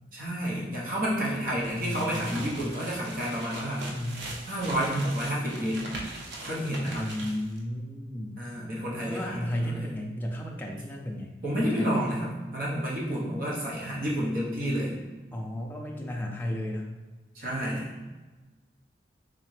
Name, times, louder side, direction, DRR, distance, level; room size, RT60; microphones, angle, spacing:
voice 1, 0.1-3.9 4.5-5.9 6.4-7.1 8.4-9.8 11.4-14.9 17.3-17.9, equal, 50° right, -5 dB, 1.0 m, -30 dB
sound 1, 1.6-7.6, right 1 dB, 80° right, 0.7 m, -41 dB
voice 2, 1.7-2.5 3.9-4.2 7.0-8.4 9.1-12.0 15.3-16.9, left 1 dB, 10° left, -1 dB, 0.4 m, -34 dB
3.7 x 3.2 x 3.2 m, 1.2 s
head